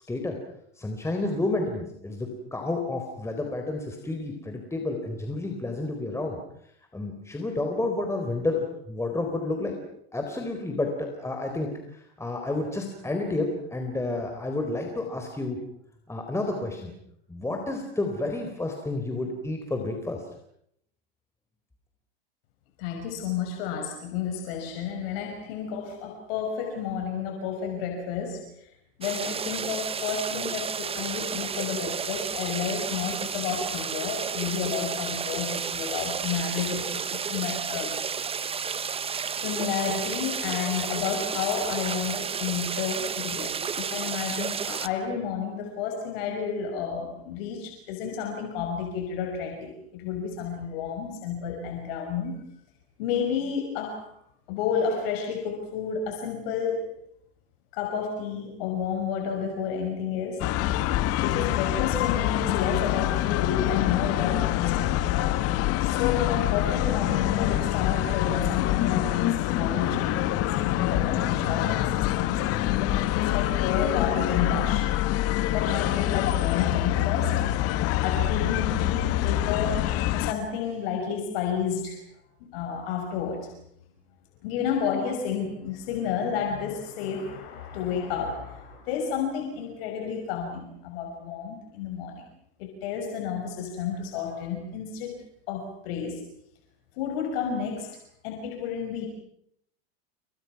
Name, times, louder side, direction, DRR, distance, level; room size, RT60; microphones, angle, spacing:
voice 1, 0.8-6.4 6.9-9.8 10.1-15.6 16.1-16.9 17.3-20.2, left 2 dB, 10° left, 3 dB, 4.1 m, -30 dB
voice 2, 22.8-28.7 29.0-37.9 39.4-52.4 53.0-54.1 54.5-57.0 57.7-60.5 61.1-65.1 65.8-75.0 75.5-77.4 78.0-82.0 82.5-83.5 84.4-92.2 92.6-95.2 95.5-96.2 97.0-98.0 98.2-99.1, left 7 dB, 65° left, 3 dB, 5.7 m, -31 dB
sound 1, 29.0-44.9, right 6 dB, 20° right, 1.1 m, -32 dB
sound 2, 60.4-80.3, left 14 dB, 45° left, 1.8 m, -25 dB
29.5 x 26.0 x 6.0 m, 0.72 s
hypercardioid pair, 110°, 32 cm